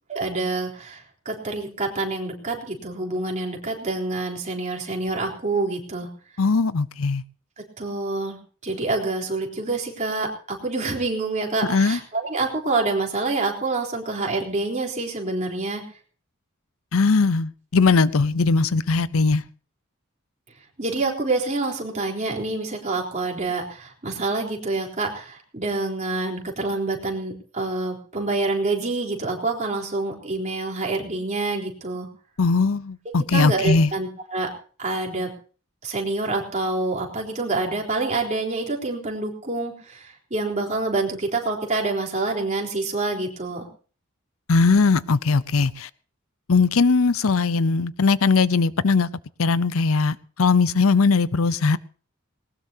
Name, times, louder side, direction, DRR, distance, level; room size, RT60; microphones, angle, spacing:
voice 1, 0.1-6.1 7.8-8.4 8.6-15.8 20.8-32.1 33.3-34.5 34.8-35.3 35.8-43.7, right 3 dB, 35° right, 3.8 m, -27 dB
voice 2, 6.4-7.2 11.7-12.0 16.9-19.4 32.4-33.9 44.5-45.9 46.5-49.1 49.4-51.8, left 4 dB, 75° left, 0.7 m, -19 dB
20.0 x 19.0 x 2.8 m
head